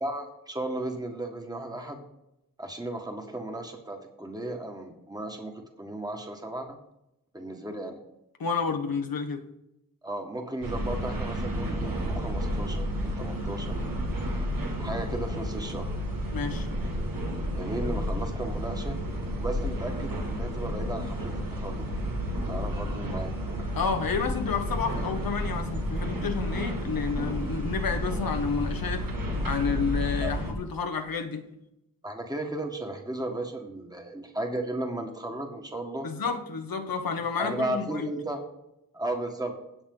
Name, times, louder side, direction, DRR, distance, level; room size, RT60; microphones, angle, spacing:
voice 1, 0.0-2.1 2.6-6.8 7.3-8.0 10.0-13.8 14.8-15.9 17.5-19.0 19.4-21.9 22.5-23.3 30.2-30.3 32.0-36.1 37.4-38.4 38.9-39.5, right 1 dB, 10° right, 3 dB, 1.7 m, -35 dB
voice 2, 8.4-9.4 16.3-16.7 23.7-29.0 29.4-31.4 36.0-38.1, left 5 dB, 85° left, 6 dB, 1.3 m, -30 dB
sound 1, 10.6-30.5, equal, 75° right, 1.9 m, -31 dB
17.0 x 6.4 x 3.9 m, 0.86 s
wide cardioid pair, 90°, 34 cm